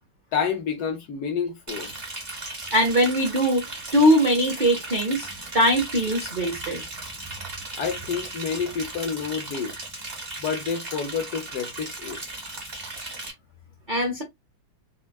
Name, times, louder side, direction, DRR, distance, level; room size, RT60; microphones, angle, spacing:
voice 1, 0.3-1.9 7.8-9.8 10.4-12.2, left 6 dB, 70° left, 1.0 m, -29 dB
Liquid, 1.7-13.3, right 2 dB, 30° right, 1.0 m, -36 dB
voice 2, 2.7-3.6 3.9-5.3 5.5-6.8 13.9-14.2, equal, 70° right, 0.4 m, -21 dB
4.3 x 2.2 x 2.2 m
omnidirectional pair, 2.1 m